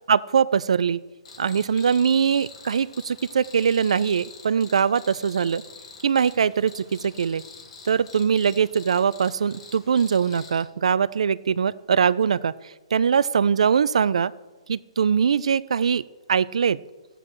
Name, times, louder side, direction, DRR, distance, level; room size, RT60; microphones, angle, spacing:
voice 1, 0.1-1.0 1.4-5.6 6.0-7.4 7.9-14.3 14.7-16.0 16.3-16.8, right 7 dB, 80° right, 19 dB, 0.3 m, -22 dB
Cricket, 1.3-10.6, left 5 dB, 65° left, 1.9 m, -46 dB
14.5 x 9.1 x 3.1 m, 1.2 s
hypercardioid pair, 140°, 3 cm